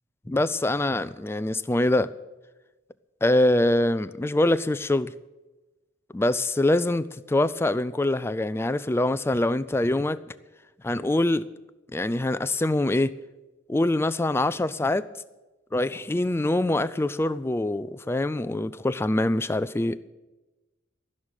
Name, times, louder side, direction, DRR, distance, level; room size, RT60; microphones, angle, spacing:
voice 1, 0.3-2.1 3.2-5.1 6.1-10.2 10.8-11.5 11.9-13.2 13.7-15.1 15.7-20.1, left 1 dB, 10° left, 14 dB, 0.4 m, -24 dB
14.5 x 6.5 x 9.1 m, 1.1 s
head